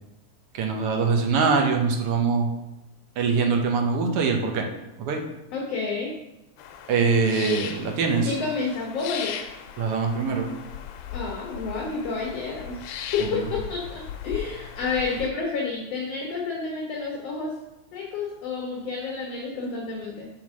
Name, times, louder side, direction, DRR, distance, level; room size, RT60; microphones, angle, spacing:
voice 1, 0.5-2.5 3.2-4.7 5.0-5.2 6.9-8.3 9.8-10.5 13.2-13.5, right 5 dB, 70° right, 2 dB, 1.5 m, -23 dB
voice 2, 5.5-6.1 8.2-9.4 11.1-12.8 13.1-17.5 17.9-20.3, left 4 dB, 65° left, -1 dB, 1.8 m, -30 dB
sound 1, 6.6-15.3, left 9 dB, 90° left, 2.1 m, -38 dB
5.6 x 4.6 x 6.1 m, 0.95 s
omnidirectional pair, 3.5 m